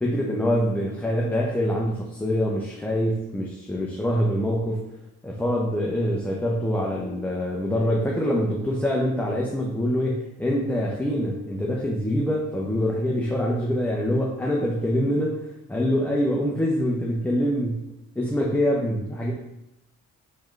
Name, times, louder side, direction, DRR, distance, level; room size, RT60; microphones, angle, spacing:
voice 1, 0.0-4.9 5.2-17.9 18.2-19.3, equal, 5° left, -2 dB, 0.6 m, -25 dB
3.4 x 3.2 x 3.6 m, 0.86 s
cardioid pair, 90°, 30 cm